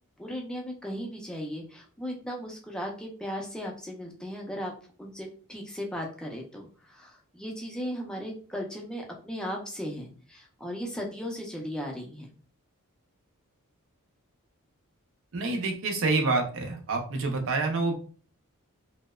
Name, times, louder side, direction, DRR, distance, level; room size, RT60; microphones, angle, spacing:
voice 1, 0.2-4.7 5.0-12.3, equal, 5° left, 0 dB, 0.4 m, -36 dB
voice 2, 15.3-17.9, right 3 dB, 60° right, 3 dB, 0.5 m, -27 dB
2.7 x 2.0 x 2.2 m, 0.40 s
head